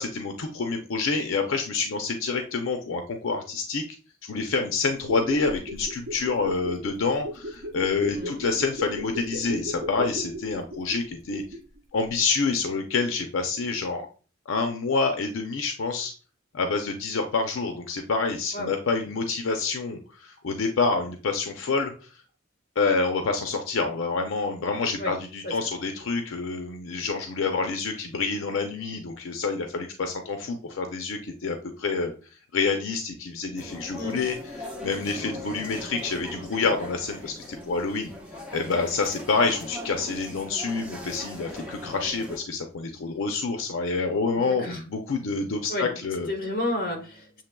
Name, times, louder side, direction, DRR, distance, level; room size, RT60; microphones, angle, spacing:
voice 1, 0.0-3.8 4.2-11.4 11.9-14.1 14.5-16.1 16.5-21.9 22.8-32.1 32.5-38.1 38.5-46.3, left 4 dB, 80° left, 5 dB, 0.5 m, -27 dB
sound 1, 5.0-11.8 12.1-12.2, equal, 80° right, 0.8 m, -36 dB
sound 2, 33.6-42.4, left 1 dB, 5° right, 0.8 m, -40 dB
voice 2, 44.4-44.8 45.7-45.9 46.3-47.4, left 1 dB, 45° left, 3 dB, 1.1 m, -31 dB
7.2 x 2.9 x 2.2 m, 0.38 s
head